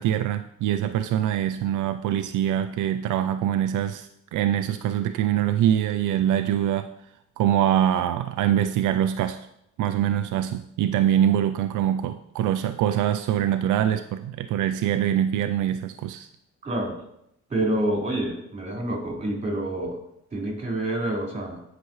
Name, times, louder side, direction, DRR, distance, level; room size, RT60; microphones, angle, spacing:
voice 1, 0.0-6.9 7.4-9.5 9.8-16.3, right 10 dB, 80° right, 9 dB, 0.5 m, -24 dB
voice 2, 16.6-17.0 17.5-20.0 20.3-21.6, right 1 dB, 25° right, -2 dB, 4.3 m, -27 dB
15.5 x 6.0 x 3.1 m, 0.77 s
cardioid pair, 90°, 30 cm